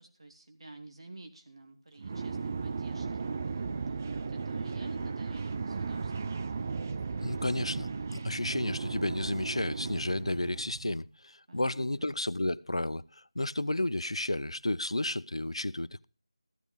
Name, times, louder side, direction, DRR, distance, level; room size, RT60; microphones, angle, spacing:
voice 1, 0.0-6.4 11.5-12.2, right 2 dB, 65° right, 1.7 m, -50 dB
sound 1, 2.0-11.0, right 4 dB, 30° right, 0.5 m, -36 dB
voice 2, 7.2-16.1, left 1 dB, 90° left, 0.5 m, -32 dB
14.5 x 8.1 x 5.1 m
figure-of-eight pair, 170°, 3 cm